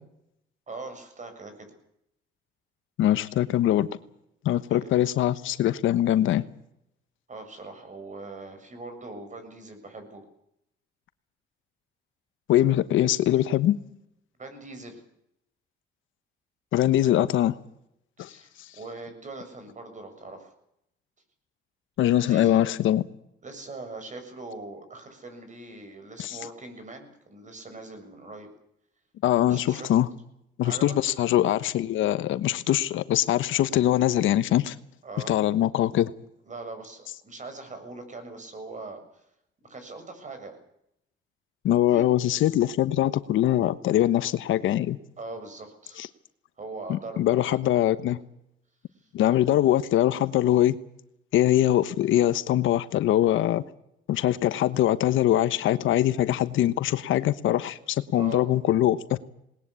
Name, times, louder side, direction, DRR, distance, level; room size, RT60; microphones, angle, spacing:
voice 1, 0.7-1.7 4.7-4.9 7.3-10.2 14.4-15.0 18.2-20.5 22.1-22.6 23.4-28.5 29.5-29.9 30.6-30.9 35.0-35.4 36.5-39.2 39.6-40.6 41.9-42.0 45.2-46.0 46.6-47.6 58.1-58.4, right 3 dB, 40° right, 7.1 m, -41 dB
voice 2, 3.0-3.9 4.4-6.5 12.5-13.8 16.7-17.5 18.2-18.4 22.0-23.0 26.2-26.4 29.2-30.1 30.6-34.7 35.3-36.1 41.6-45.0 46.0-46.1 46.9-48.2 49.1-50.8 51.3-53.6 54.1-59.2, left 12 dB, 80° left, 1.2 m, -22 dB
20.0 x 20.0 x 8.4 m
cardioid pair, 90°, 20 cm